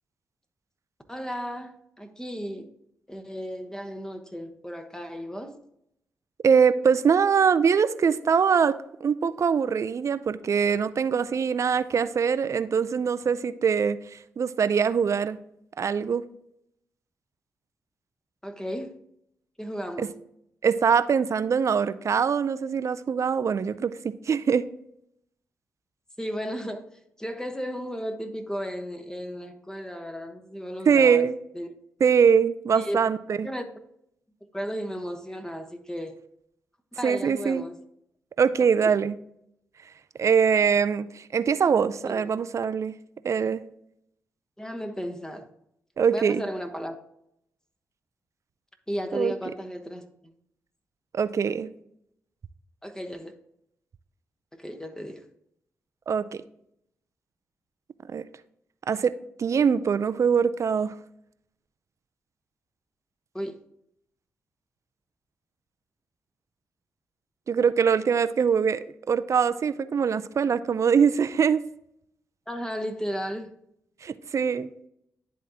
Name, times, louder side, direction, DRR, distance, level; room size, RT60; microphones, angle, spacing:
voice 1, 1.1-2.7 3.1-5.6 18.4-19.0 19.6-20.2 26.2-26.9 27.2-31.3 31.5-31.7 32.7-33.0 33.4-33.7 34.5-36.2 37.0-37.8 38.8-38.9 42.0-42.3 43.4-43.5 44.6-45.5 46.1-47.0 48.9-50.3 52.8-53.3 54.6-55.2 63.3-63.6 72.5-73.5, equal, 10° left, 1.1 m, -34 dB
voice 2, 6.4-15.4 15.8-16.2 20.6-24.7 30.9-31.4 32.0-33.5 37.0-37.6 38.4-39.2 40.2-43.0 43.2-43.6 46.0-46.4 49.1-49.3 51.1-51.7 56.1-56.2 58.1-58.2 58.9-59.1 59.4-60.9 67.5-71.6 74.0-74.7, right 6 dB, 55° right, 0.4 m, -23 dB
10.5 x 3.7 x 2.8 m
supercardioid pair, 40°, 6 cm